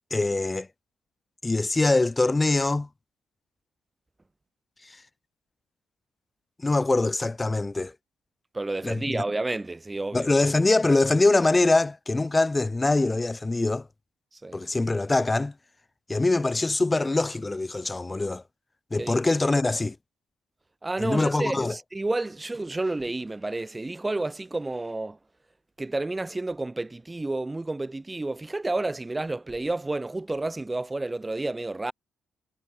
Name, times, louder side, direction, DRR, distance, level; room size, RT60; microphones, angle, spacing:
voice 1, 0.1-0.7 1.4-2.9 6.6-7.9 8.8-9.2 10.1-13.9 14.5-15.5 16.1-18.4 18.9-19.9 21.0-21.7, left 2 dB, 20° left, 1.6 m, -23 dB
voice 2, 8.5-10.3 14.4-14.6 19.0-19.2 20.8-25.2 25.8-31.9, right 2 dB, 15° right, 7.1 m, -30 dB
cardioid pair, 90°, 0 cm